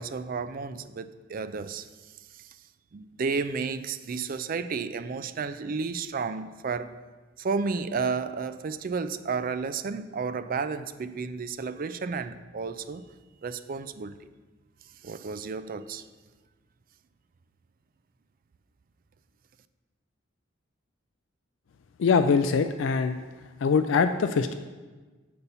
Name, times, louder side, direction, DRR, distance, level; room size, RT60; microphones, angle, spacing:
voice 1, 0.0-1.9 2.3-2.5 2.9-7.0 7.4-13.0 13.4-14.2 15.0-16.0, right 5 dB, 45° right, 0.4 m, -32 dB
voice 2, 22.0-23.2 23.6-24.5, left 5 dB, 70° left, 0.4 m, -23 dB
8.4 x 4.1 x 6.7 m
head